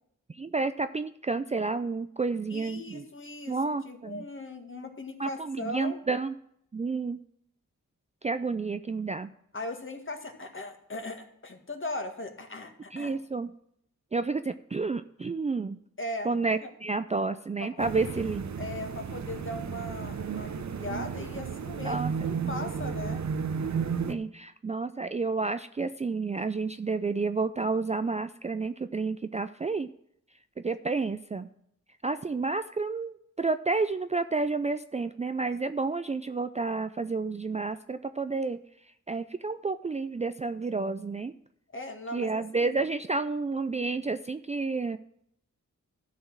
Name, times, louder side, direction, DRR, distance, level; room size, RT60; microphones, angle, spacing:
voice 1, 0.3-3.1 3.5-4.2 5.2-6.3 6.7-7.2 8.2-9.3 12.9-13.5 14.1-15.8 16.2-18.5 21.8-22.1 24.1-29.9 30.6-31.5 32.0-38.6 39.1-41.3 42.1-45.0, right 4 dB, 20° right, 11 dB, 0.4 m, -30 dB
voice 2, 2.5-3.6 3.8-6.0 9.5-13.2 16.0-16.4 16.6-16.7 17.6-17.9 18.6-23.2 41.7-42.7, left 2 dB, 40° left, 4 dB, 1.9 m, -38 dB
sound 1, 17.8-24.1, right 6 dB, 60° right, 0.9 m, -33 dB
12.5 x 4.3 x 7.3 m, 0.71 s
cardioid pair, 50°, 32 cm